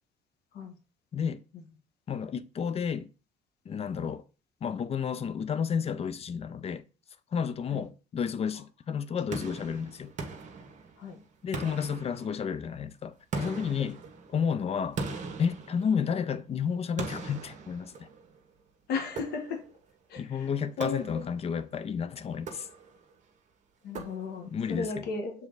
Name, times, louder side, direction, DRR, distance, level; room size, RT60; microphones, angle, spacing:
voice 1, 1.1-1.4 2.1-3.1 3.7-4.2 4.6-6.8 7.3-10.1 11.4-14.0 14.3-15.0 15.4-18.1 20.2-22.7 24.5-25.1, left 7 dB, 35° left, 0.6 m, -31 dB
sound 1, 9.3-11.1 11.5-12.7 13.3-16.3 17.0-18.4 19.2-19.8 20.8-21.5 22.3-23.1 23.9-24.6, right 4 dB, 45° right, 1.4 m, -40 dB
voice 2, 18.9-19.6 20.1-20.5 20.8-21.3 23.8-25.3, left 4 dB, 75° left, 1.5 m, -35 dB
7.1 x 3.7 x 4.0 m
cardioid pair, 110°, 17 cm